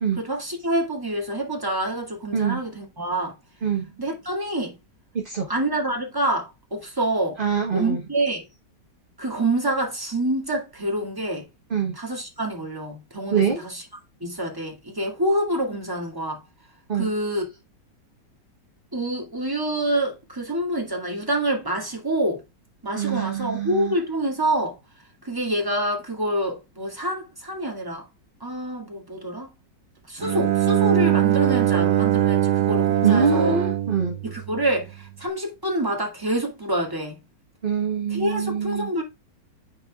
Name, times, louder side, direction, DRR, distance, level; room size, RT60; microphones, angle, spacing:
voice 1, 0.2-3.4 4.0-4.8 5.5-7.4 7.7-8.4 9.2-11.5 11.9-13.8 14.2-16.4 16.9-17.4 18.9-22.4 22.8-24.8 25.2-28.1 28.4-29.5 30.1-33.6 34.2-37.2 38.1-39.0, right 1 dB, 10° right, 2.2 m, -27 dB
voice 2, 7.4-8.0 11.7-11.9 13.3-13.6 16.9-17.1 22.9-23.9 33.0-34.2 37.6-38.9, right 6 dB, 35° right, 1.2 m, -24 dB
Bowed string instrument, 30.2-35.0, right 13 dB, 65° right, 1.2 m, -22 dB
10.5 x 4.4 x 2.4 m
omnidirectional pair, 1.9 m